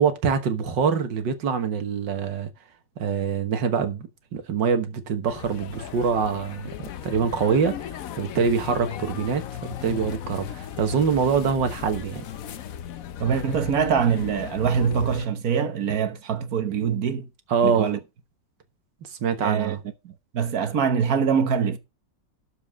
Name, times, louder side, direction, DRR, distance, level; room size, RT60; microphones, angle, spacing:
voice 1, 0.0-2.5 3.0-12.2 17.5-17.9 19.0-19.8, right 6 dB, 80° right, 2.0 m, -25 dB
sound 1, 5.3-15.3, left 10 dB, 60° left, 1.0 m, -36 dB
voice 2, 13.2-17.3 17.6-18.0 19.4-19.8 20.3-21.8, right 7 dB, 60° right, 1.5 m, -24 dB
12.5 x 5.2 x 5.2 m
omnidirectional pair, 1.9 m